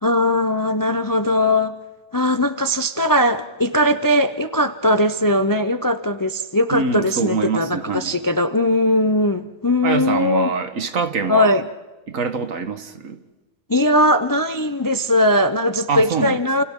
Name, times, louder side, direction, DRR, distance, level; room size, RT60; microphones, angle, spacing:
voice 1, 0.0-1.8 2.1-10.5 11.3-11.6 13.7-16.6, left 1 dB, 25° left, 10 dB, 0.4 m, -19 dB
voice 2, 6.7-8.1 9.8-11.6 12.1-13.2 15.9-16.4, right 5 dB, 70° right, 8 dB, 1.8 m, -24 dB
29.0 x 29.0 x 3.7 m, 1.1 s
omnidirectional pair, 1.4 m